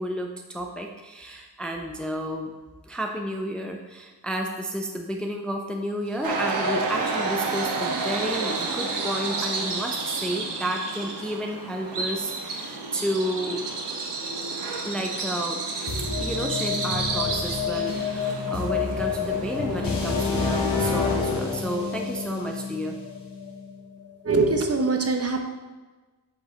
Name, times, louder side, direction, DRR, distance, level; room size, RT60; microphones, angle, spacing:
voice 1, 0.0-2.5 2.9-13.6 14.8-15.6 16.0-23.0, right 1 dB, ahead, 2 dB, 0.6 m, -31 dB
Bird vocalization bird call bird song, 6.1-20.9, right 3 dB, 75° right, 1.2 m, -33 dB
sound 1, 6.2-10.3, right 3 dB, 55° right, 1.0 m, -29 dB
sound 2, 15.9-23.7, left 5 dB, 55° left, 1.8 m, -28 dB
voice 2, 24.3-25.4, right 3 dB, 35° right, 4 dB, 0.9 m, -22 dB
8.1 x 5.3 x 4.0 m, 1.3 s
wide cardioid pair, 100°, 42 cm